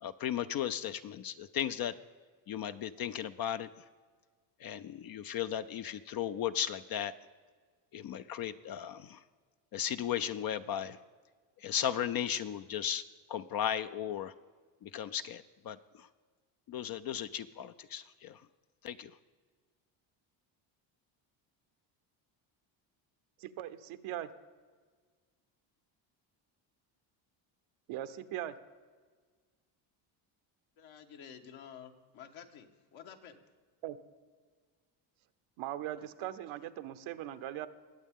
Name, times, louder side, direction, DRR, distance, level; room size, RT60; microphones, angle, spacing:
voice 1, 0.0-1.9 2.5-3.8 4.6-7.1 7.9-9.2 9.7-11.0 11.6-13.0 13.3-14.3 14.8-16.1 16.7-18.4 18.8-19.2, left 10 dB, 50° left, 11 dB, 0.5 m, -36 dB
voice 2, 23.4-24.3 27.9-28.6 33.8-34.0 35.6-37.7, right 12 dB, 70° right, 11 dB, 0.9 m, -40 dB
voice 3, 30.8-33.4, left 8 dB, 70° left, 5 dB, 1.4 m, -51 dB
20.5 x 8.2 x 3.7 m, 1.5 s
cardioid pair, 100°, 49 cm